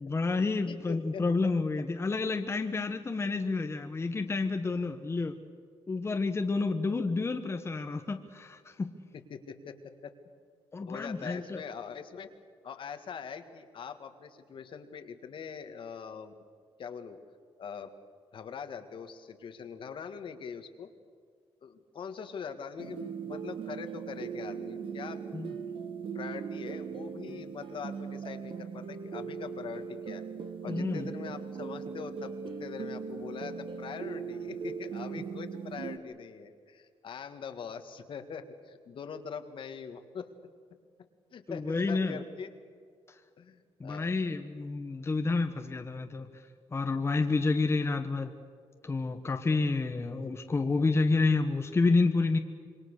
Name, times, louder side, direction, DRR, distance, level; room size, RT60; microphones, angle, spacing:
voice 1, 0.0-5.3 5.9-8.9 10.7-11.6 25.3-25.5 30.6-31.1 41.5-42.2 43.8-46.3 46.7-48.3 48.8-52.4, left 3 dB, 25° left, 6 dB, 1.2 m, -29 dB
voice 2, 0.7-1.3 9.1-10.1 10.9-12.3 12.6-16.3 16.8-17.2 17.6-17.9 18.3-20.9 21.6-25.2 26.1-30.3 30.6-40.3 41.3-42.5 43.4-44.2, left 6 dB, 60° left, 7 dB, 1.9 m, -42 dB
sound 1, 22.8-36.0, right 6 dB, 60° right, 1.6 m, -39 dB
26.5 x 22.5 x 6.7 m, 2.1 s
cardioid pair, 115°, 10 cm